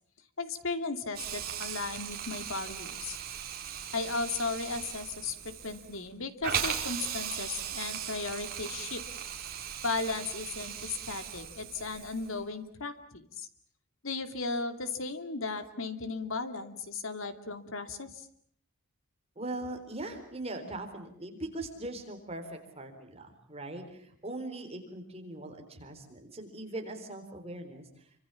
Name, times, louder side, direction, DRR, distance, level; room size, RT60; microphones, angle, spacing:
voice 1, 0.4-3.2 3.9-9.0 9.8-13.5 14.0-18.3, left 3 dB, 65° left, 9 dB, 2.5 m, -36 dB
Hiss, 1.1-12.4, right 8 dB, 45° right, 4.0 m, -38 dB
voice 2, 19.4-28.1, right 2 dB, 30° right, 5 dB, 4.1 m, -40 dB
28.0 x 25.5 x 7.0 m, 0.63 s
head